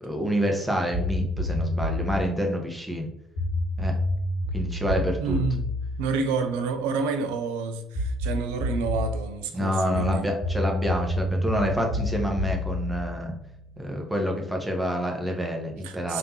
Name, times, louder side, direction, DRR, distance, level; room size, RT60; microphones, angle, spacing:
voice 1, 0.0-3.1 3.8-4.0 4.5-5.4 9.5-13.3 13.8-16.2, equal, 10° right, 0.9 m, -27 dB
sound 1, 0.9-2.2 3.4-7.1 7.9-9.2 9.9-13.9, left 1 dB, 80° left, 0.9 m, -29 dB
voice 2, 5.2-5.7 6.0-10.3 15.8-16.2, right 4 dB, 75° right, 0.3 m, -29 dB
3.5 x 2.9 x 2.8 m
figure-of-eight pair, 50°, 0 cm